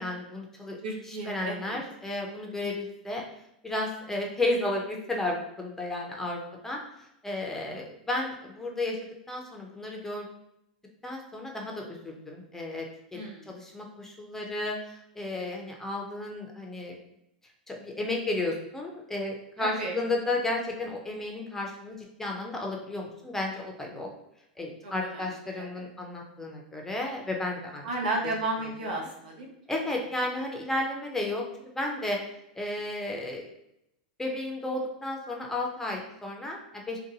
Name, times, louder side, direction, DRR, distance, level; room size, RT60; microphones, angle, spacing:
voice 1, 0.0-0.8 1.1-3.2 3.6-6.8 7.2-9.0 9.3-10.3 11.0-17.0 17.7-24.1 24.6-27.9 29.0-29.1 29.7-32.2 32.5-33.5 34.2-37.0, left 2 dB, 10° left, 0 dB, 0.5 m, -33 dB
voice 2, 0.8-1.8 13.1-13.5 19.6-20.0 24.8-25.3 25.5-25.8 27.8-29.5, right 2 dB, 85° right, -1 dB, 0.7 m, -33 dB
2.6 x 2.2 x 2.7 m, 0.81 s
hypercardioid pair, 115°, 4 cm